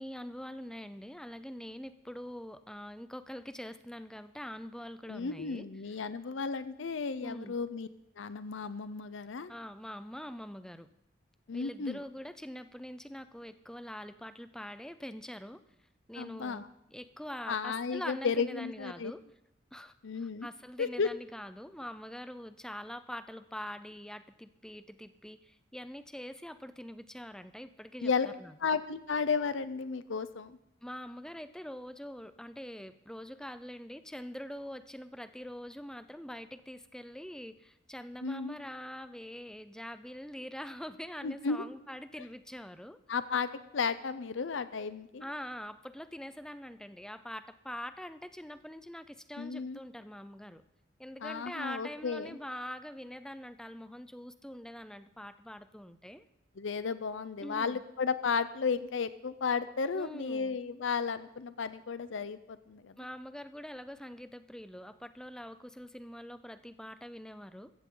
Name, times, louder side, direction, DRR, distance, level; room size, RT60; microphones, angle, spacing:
voice 1, 0.0-6.0 7.2-7.6 9.5-10.9 11.5-15.6 16.1-16.6 16.9-19.2 19.7-28.6 30.8-43.0 45.2-50.6 51.0-56.3 57.4-57.8 59.9-60.6 63.0-67.7, equal, 5° left, 11 dB, 0.5 m, -44 dB
voice 2, 5.1-7.9 8.2-9.5 11.5-12.0 16.2-16.7 17.5-19.1 20.0-20.5 20.8-21.1 28.0-28.3 28.6-30.6 38.2-38.6 41.2-41.6 43.1-45.3 49.4-49.8 51.2-52.4 56.6-63.0, left 5 dB, 80° left, 13 dB, 0.6 m, -33 dB
14.5 x 14.5 x 3.9 m, 0.82 s
head